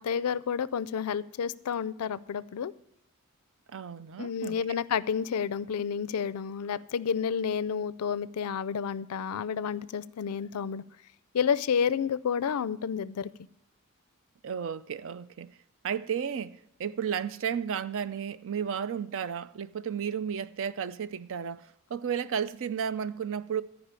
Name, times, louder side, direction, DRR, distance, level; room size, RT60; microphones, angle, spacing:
voice 1, 0.0-2.7 4.2-10.8 11.3-13.3, left 7 dB, 85° left, 0.4 m, -30 dB
voice 2, 3.7-4.8 14.4-15.5 15.8-23.6, right 7 dB, 60° right, 0.4 m, -33 dB
13.5 x 5.1 x 8.2 m
head